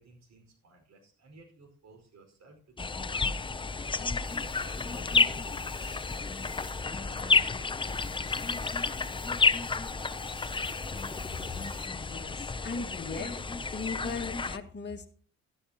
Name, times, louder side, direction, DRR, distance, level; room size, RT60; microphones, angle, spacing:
voice 1, 0.0-3.4 4.4-8.4 8.6-9.3, right 2 dB, 60° right, 4 dB, 5.0 m, -56 dB
sound 1, 2.8-14.6, left 4 dB, 15° left, 0.6 m, -31 dB
sound 2, 4.2-11.9, right 2 dB, 15° right, 1.4 m, -53 dB
voice 2, 11.5-13.4 13.7-15.1, left 4 dB, 35° left, 3 dB, 2.0 m, -38 dB
13.0 x 12.0 x 2.9 m, 0.41 s
cardioid pair, 90°, 30 cm